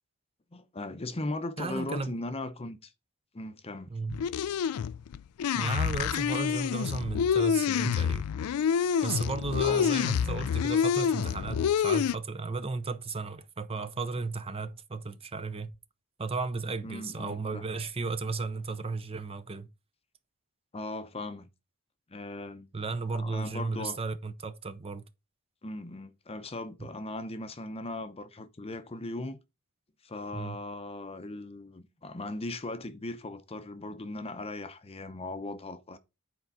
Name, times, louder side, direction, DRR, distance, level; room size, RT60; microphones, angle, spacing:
voice 1, 0.5-2.9 3.3-3.9 9.6-9.9 16.8-17.6 20.7-21.5 22.1-22.7 23.1-24.0 25.6-29.4 30.0-36.0, left 2 dB, 25° left, 0.7 m, -38 dB
voice 2, 1.6-2.2 3.9-4.2 5.5-8.3 9.0-15.7 16.2-19.7 22.7-25.0 26.8-26.9 30.3-30.6, right 4 dB, 25° right, 0.6 m, -34 dB
sound 1, 4.1-12.1, left 7 dB, 70° left, 0.3 m, -27 dB
9.8 x 4.6 x 4.1 m
head